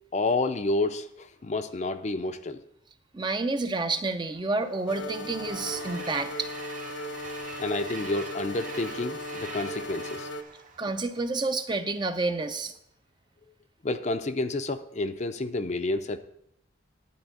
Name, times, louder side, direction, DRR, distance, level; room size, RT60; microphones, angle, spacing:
voice 1, 0.1-2.6 7.6-10.3 13.8-16.2, left 2 dB, 35° left, 9 dB, 0.5 m, -29 dB
voice 2, 3.1-6.5 10.8-12.7, right 3 dB, 20° right, 8 dB, 0.5 m, -29 dB
Train, 4.3-11.7, right 4 dB, 40° right, 0.9 m, -44 dB
sound 1, 4.9-10.4, left 1 dB, 75° left, 1.0 m, -37 dB
11.5 x 4.4 x 7.7 m, 0.76 s
head